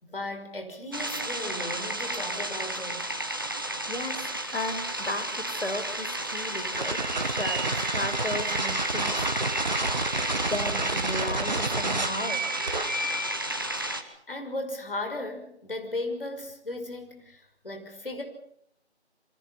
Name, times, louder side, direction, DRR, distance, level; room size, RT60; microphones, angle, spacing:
voice 1, 0.0-3.1 14.3-18.2, left 2 dB, 55° left, 5 dB, 5.9 m, -36 dB
sound 1, 0.9-14.0, right 1 dB, 20° right, 1.2 m, -32 dB
voice 2, 3.5-9.3 10.5-12.4, left 1 dB, 70° left, 8 dB, 5.0 m, -35 dB
sound 2, 6.7-13.4, right 2 dB, 40° right, 1.5 m, -30 dB
28.5 x 24.5 x 5.8 m, 0.71 s
figure-of-eight pair, 170°, 34 cm